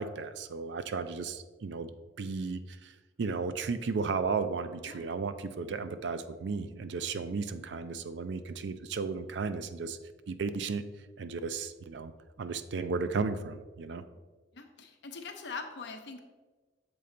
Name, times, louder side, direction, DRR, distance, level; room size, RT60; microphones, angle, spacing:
voice 1, 0.0-1.9 2.2-2.9 3.2-10.0 10.3-10.8 11.2-12.1 12.4-14.0, right 4 dB, 65° right, 11 dB, 0.4 m, -34 dB
voice 2, 14.5-16.2, left 4 dB, 65° left, 5 dB, 0.8 m, -42 dB
7.0 x 4.3 x 3.8 m, 1.3 s
head